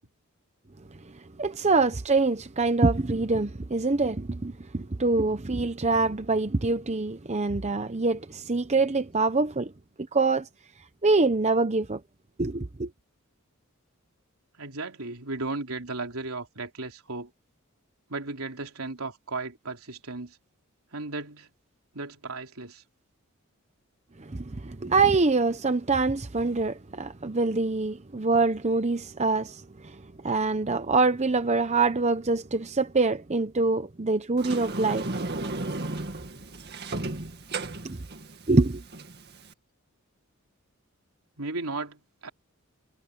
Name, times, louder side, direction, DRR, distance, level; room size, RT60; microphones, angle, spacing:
voice 1, 1.4-9.7 10.1-10.5 11.0-12.0 12.4-12.9 24.3-30.0 30.2-35.1 37.8-38.0 38.5-38.8, right 3 dB, 30° right, 0.8 m, -25 dB
voice 2, 14.6-17.3 18.1-20.4 20.9-21.5 21.9-22.8 41.4-42.3, right 3 dB, 80° right, 3.5 m, -35 dB
Sliding door, 34.4-39.5, right 2 dB, 50° right, 2.1 m, -34 dB
head